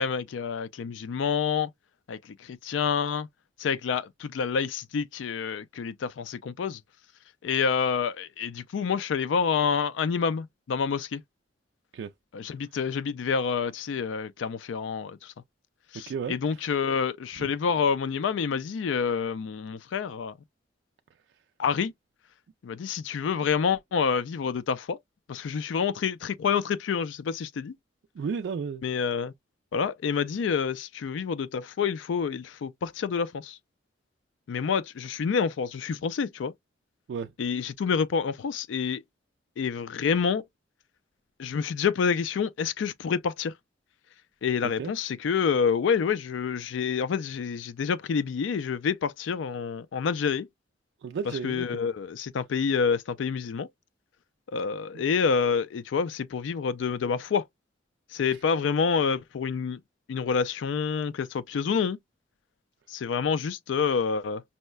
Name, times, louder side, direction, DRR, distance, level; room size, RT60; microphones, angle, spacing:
voice 1, 0.0-1.7 2.1-3.3 3.6-6.8 7.4-11.2 12.3-15.3 15.9-20.4 21.6-21.9 22.6-25.0 25.3-27.7 28.8-29.3 29.7-33.6 34.5-36.5 37.4-39.0 39.6-40.4 41.4-43.5 44.4-50.5 51.4-53.7 54.5-57.4 58.1-59.8 60.1-62.0 62.9-64.4, left 6 dB, 80° left, 0.4 m, -28 dB
voice 2, 16.1-16.7 17.4-17.5 28.1-28.8 37.1-37.3 44.8-44.9 51.0-51.7 54.9-55.0 58.3-58.4, right 6 dB, 70° right, 0.3 m, -33 dB
5.4 x 2.1 x 2.2 m
head